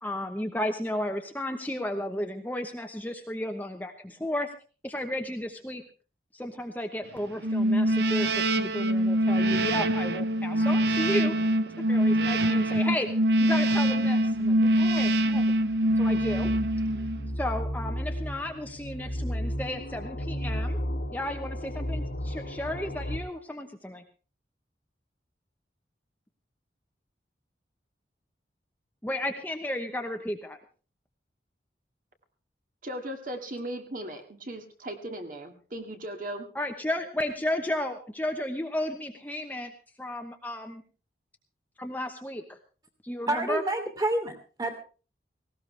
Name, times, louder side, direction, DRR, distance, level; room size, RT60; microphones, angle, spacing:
voice 1, 0.0-4.5 4.8-5.8 6.3-11.3 11.9-13.1 13.4-15.5 16.0-16.5 17.4-20.8 21.1-24.0 29.0-30.6 36.5-39.7 40.0-40.8 41.8-42.6 43.0-43.6, left 1 dB, 10° left, 4 dB, 0.9 m, -33 dB
sound 1, 7.4-17.3, right 1 dB, 65° right, 0.8 m, -24 dB
sound 2, 14.4-23.2, equal, 70° left, 1.8 m, -34 dB
voice 2, 32.8-36.5, right 1 dB, 50° right, 5 dB, 2.1 m, -37 dB
voice 3, 43.3-44.7, right 2 dB, 20° right, 6 dB, 2.7 m, -28 dB
18.5 x 17.5 x 3.3 m, 0.36 s
head